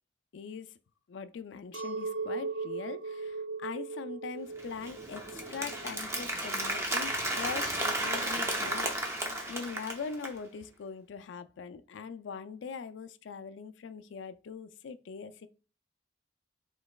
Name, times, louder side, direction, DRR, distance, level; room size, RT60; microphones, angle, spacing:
voice 1, 0.3-0.7 1.1-8.9 9.5-15.5, left 5 dB, 85° left, 0.4 m, -42 dB
Chink clink, 1.7-7.2, right 4 dB, 75° right, 0.5 m, -39 dB
Applause, 4.6-10.4, right 1 dB, 15° right, 0.7 m, -33 dB
5.1 x 3.9 x 2.3 m
head